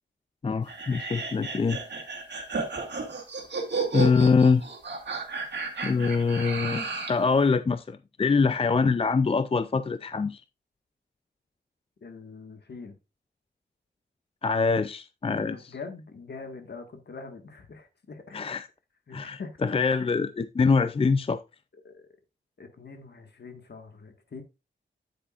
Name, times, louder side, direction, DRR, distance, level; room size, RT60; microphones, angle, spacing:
voice 1, 0.4-1.8 3.9-4.6 5.8-10.4 14.4-15.7 18.3-18.7 19.1-21.4, left 4 dB, 30° left, 0.4 m, -24 dB
sound 1, 0.7-7.2, right 4 dB, 65° right, 2.1 m, -33 dB
voice 2, 12.0-12.9 15.4-18.4 19.1-19.7 21.8-22.1 22.6-24.4, left 4 dB, 60° left, 1.6 m, -43 dB
9.2 x 8.4 x 2.4 m
wide cardioid pair, 75°, 19 cm